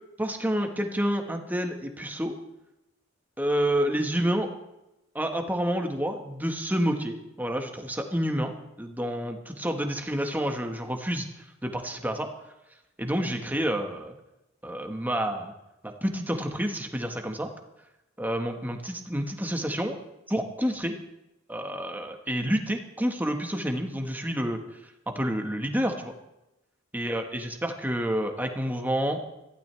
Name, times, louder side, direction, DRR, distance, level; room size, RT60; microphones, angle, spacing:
voice 1, 0.2-2.3 3.4-4.5 5.1-8.5 8.8-11.3 11.6-12.3 13.0-14.1 14.6-15.5 15.8-17.5 18.2-19.9 20.3-20.9 21.5-24.6 25.1-26.1 26.9-29.2, equal, 10° right, 4 dB, 1.5 m, -29 dB
21.5 x 15.5 x 3.4 m, 0.93 s
head